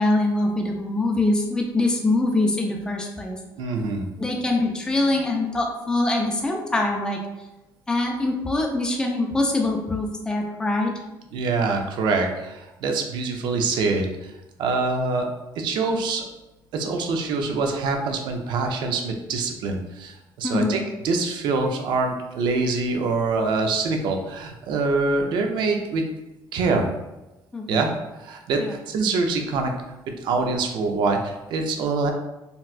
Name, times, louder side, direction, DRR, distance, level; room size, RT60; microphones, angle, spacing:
voice 1, 0.0-3.4 4.2-7.2 7.9-10.9 20.4-20.8 27.5-27.9 28.6-28.7, left 2 dB, 10° left, 1 dB, 0.4 m, -23 dB
voice 2, 3.6-4.1 11.3-14.3 14.6-15.3 15.6-16.2 16.7-26.0 26.5-26.9 27.7-27.9 28.2-29.7 30.2-32.1, right 3 dB, 75° right, 4 dB, 0.5 m, -25 dB
4.0 x 2.2 x 2.4 m, 1.0 s
cardioid pair, 140°, 8 cm